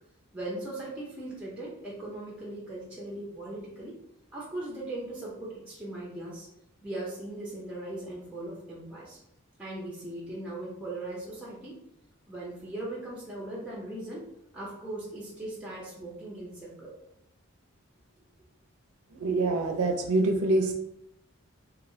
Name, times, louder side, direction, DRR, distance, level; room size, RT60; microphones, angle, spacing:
voice 1, 0.3-3.9 4.3-6.5 6.8-9.2 9.6-11.8 12.3-14.3 14.5-16.9, right 1 dB, 5° right, -5 dB, 0.6 m, -39 dB
voice 2, 19.1-20.7, right 2 dB, 90° right, 4 dB, 0.5 m, -25 dB
3.1 x 2.7 x 2.7 m, 0.81 s
head